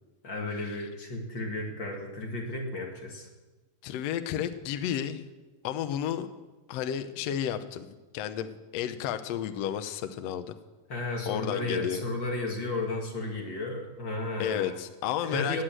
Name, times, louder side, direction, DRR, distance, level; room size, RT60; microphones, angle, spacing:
voice 1, 0.2-3.3 10.9-14.8 15.2-15.6, left 2 dB, 40° left, 0 dB, 2.0 m, -33 dB
voice 2, 3.8-5.2 5.6-6.3 6.7-7.9 8.1-10.6 11.3-12.0 14.4-15.6, left 10 dB, 80° left, 9 dB, 1.5 m, -32 dB
19.0 x 8.2 x 7.6 m, 1.2 s
omnidirectional pair, 4.1 m